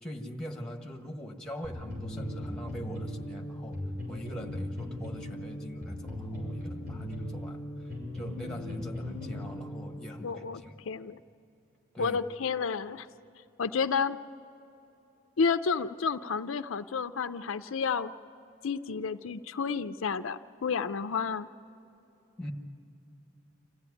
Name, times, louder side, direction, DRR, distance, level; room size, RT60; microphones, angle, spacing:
voice 1, 0.0-3.8 4.1-7.6 8.1-10.7 11.9-12.2 22.4-22.5, equal, 5° left, 2 dB, 1.5 m, -42 dB
sound 1, 1.6-10.1, left 1 dB, 50° right, 6.7 m, -38 dB
voice 2, 10.2-11.2 12.0-13.1 13.6-14.2 15.4-18.1 18.6-21.5, left 5 dB, 75° left, 11 dB, 0.5 m, -31 dB
26.0 x 15.0 x 9.7 m, 2.9 s
head